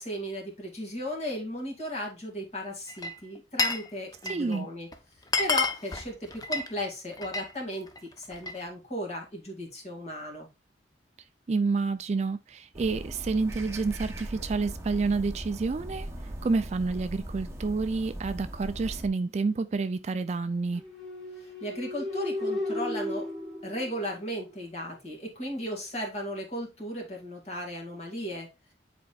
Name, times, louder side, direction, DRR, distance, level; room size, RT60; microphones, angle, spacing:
voice 1, 0.0-4.9 5.4-10.5 21.4-23.3 23.6-28.5, equal, 35° left, 2.2 m, -36 dB
Glass, 2.9-3.9 4.1-4.6 4.9-5.0 5.2-7.5 7.9-8.6, left 3 dB, 20° left, 0.6 m, -30 dB
voice 2, 4.3-4.7 11.5-16.1 16.4-20.8, right 4 dB, 35° right, 0.3 m, -29 dB
sound 1, 12.7-19.1, right 1 dB, 15° right, 0.9 m, -39 dB
sound 2, 20.8-24.6, left 1 dB, ahead, 1.9 m, -35 dB
9.6 x 4.3 x 2.3 m
head